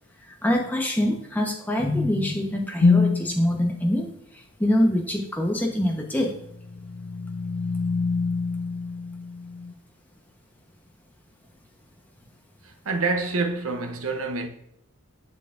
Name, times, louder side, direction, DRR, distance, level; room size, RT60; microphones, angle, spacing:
voice 1, 0.2-6.3, left 1 dB, 10° left, 1.0 m, -25 dB
sound 1, 2.8-3.4 6.2-9.7, left 4 dB, 50° left, 0.4 m, -25 dB
voice 2, 12.6-14.5, right 3 dB, 65° right, 0.9 m, -27 dB
7.1 x 6.6 x 2.6 m
head